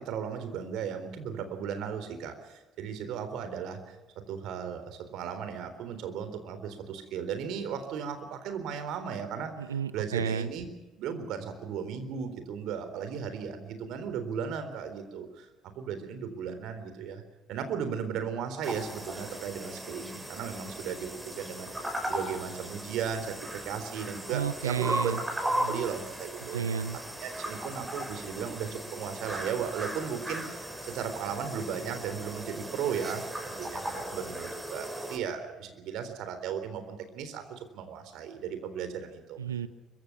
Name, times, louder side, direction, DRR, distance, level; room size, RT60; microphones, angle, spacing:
voice 1, 0.0-4.0 4.3-9.5 9.9-15.5 15.7-17.2 17.5-25.2 25.7-26.6 27.2-39.4, right 7 dB, 65° right, 9 dB, 3.8 m, -36 dB
voice 2, 9.6-10.5 24.3-25.2 25.6-25.8 26.5-27.0 39.4-39.7, right 7 dB, 90° right, 16 dB, 0.9 m, -32 dB
sound 1, 18.6-35.2, right 1 dB, 15° right, 6.6 m, -37 dB
24.5 x 23.5 x 6.0 m, 1.1 s
hypercardioid pair, 55°, 0 cm